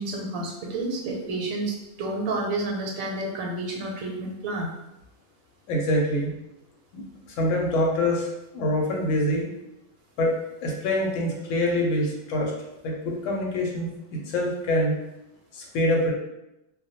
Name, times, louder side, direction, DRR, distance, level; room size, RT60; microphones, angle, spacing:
voice 1, 0.0-4.7, right 2 dB, 85° right, 0 dB, 1.0 m, -30 dB
voice 2, 5.7-6.3 6.9-9.5 10.2-12.5 12.8-13.9 14.2-15.0 15.5-16.1, left 1 dB, 70° left, -1 dB, 0.9 m, -25 dB
2.1 x 2.1 x 2.8 m, 0.91 s
omnidirectional pair, 1.4 m